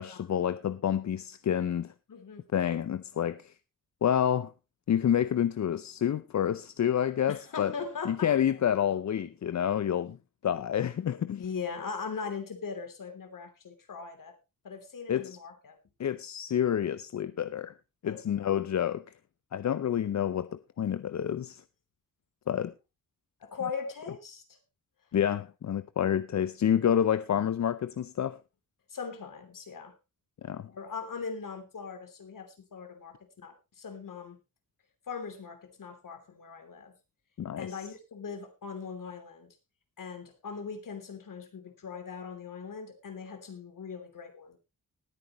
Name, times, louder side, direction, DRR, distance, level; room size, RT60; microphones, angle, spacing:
voice 1, 0.0-1.9 2.5-3.5 4.0-4.5 4.9-7.7 8.0-10.2 10.4-11.4 15.1-15.4 16.0-17.7 18.0-19.1 19.5-21.6 22.5-22.7 25.1-28.4 30.4-30.7 37.4-37.9, left 9 dB, 55° left, 0.6 m, -28 dB
voice 2, 2.1-2.4 7.3-8.3 11.3-14.3 14.6-15.8 18.0-18.2 23.4-24.4 28.9-29.9 30.7-34.4 35.1-36.9 37.6-39.5 40.0-44.6, left 5 dB, 75° left, 3.1 m, -40 dB
19.5 x 9.3 x 3.0 m
wide cardioid pair, 90°, 33 cm